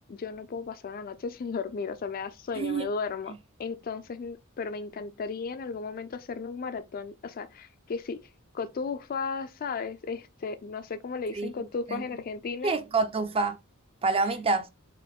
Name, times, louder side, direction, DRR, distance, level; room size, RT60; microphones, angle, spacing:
voice 1, 0.1-3.3 3.6-8.3 8.5-12.8, left 5 dB, 40° left, 0.4 m, -35 dB
voice 2, 2.5-2.9 11.3-11.5 11.9-12.0 12.6-13.6 14.0-14.7, right 3 dB, 25° right, 0.5 m, -27 dB
3.7 x 2.6 x 3.5 m
head